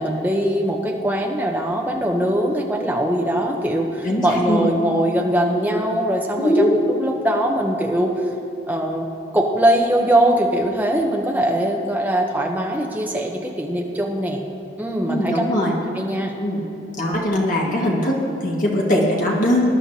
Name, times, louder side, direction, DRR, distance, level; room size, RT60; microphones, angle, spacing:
voice 1, 0.0-8.1 8.7-9.0 9.3-14.4 14.8-15.4 16.0-16.3, right 1 dB, 10° right, 0 dB, 0.9 m, -21 dB
voice 2, 4.0-4.7 6.4-6.8 15.1-15.7 16.4-16.6 17.0-19.7, left 1 dB, 45° left, -3 dB, 1.8 m, -20 dB
20.0 x 11.0 x 2.9 m, 2.6 s
head